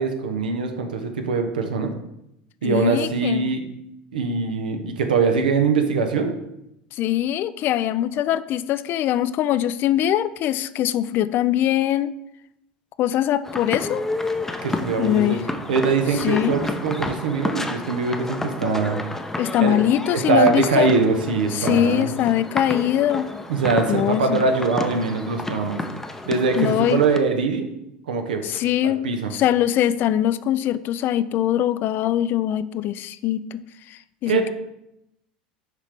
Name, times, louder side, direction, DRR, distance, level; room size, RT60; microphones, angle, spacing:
voice 1, 0.0-1.9 2.6-3.6 4.1-6.3 14.6-15.4 15.7-19.0 19.6-19.7 20.1-22.1 23.5-25.8 26.3-27.7 28.1-29.3 34.3-34.5, right 4 dB, 80° right, 6 dB, 0.8 m, -22 dB
voice 2, 2.6-3.5 7.0-12.1 13.0-14.0 15.0-15.4 16.2-16.6 19.4-20.9 21.5-23.3 23.9-24.4 26.6-27.0 28.4-29.0 29.3-33.6 34.2-34.5, left 12 dB, 50° left, 15 dB, 0.3 m, -22 dB
sound 1, 13.4-27.2, left 2 dB, 10° left, 0.6 m, -31 dB
6.6 x 5.1 x 3.4 m, 0.84 s
hypercardioid pair, 80°, 5 cm